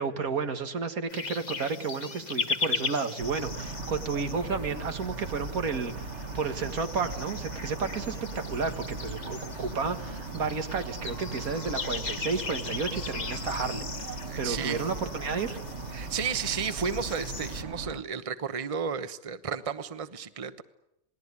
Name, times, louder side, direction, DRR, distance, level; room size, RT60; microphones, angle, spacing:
voice 1, 0.0-5.9 6.3-15.6, right 5 dB, 85° right, 8 dB, 2.2 m, -32 dB
sound 1, 1.1-17.6, left 4 dB, 35° left, 1.1 m, -38 dB
sound 2, 3.2-18.0, right 4 dB, 55° right, 1.7 m, -39 dB
voice 2, 14.3-14.9 15.9-20.6, right 6 dB, 25° right, 12 dB, 1.0 m, -33 dB
28.0 x 19.5 x 9.7 m, 0.85 s
omnidirectional pair, 1.5 m